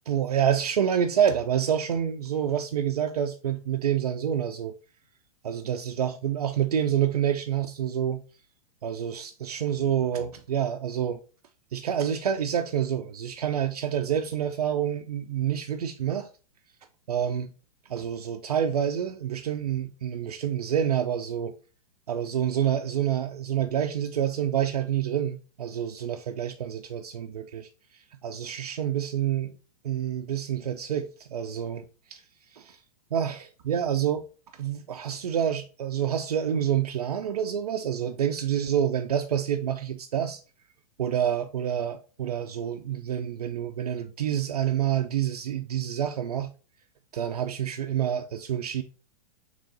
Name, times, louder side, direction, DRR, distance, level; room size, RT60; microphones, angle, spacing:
voice 1, 0.1-4.7 5.4-8.2 8.8-11.2 11.7-16.3 17.1-17.5 17.9-21.5 22.1-27.7 28.2-29.5 29.8-31.8 32.1-32.2 32.5-32.8 33.1-34.2 34.6-40.4 41.0-46.5 47.1-48.8, right 9 dB, 80° right, 0.5 m, -27 dB
3.8 x 3.1 x 4.0 m
hypercardioid pair, 110°, 19 cm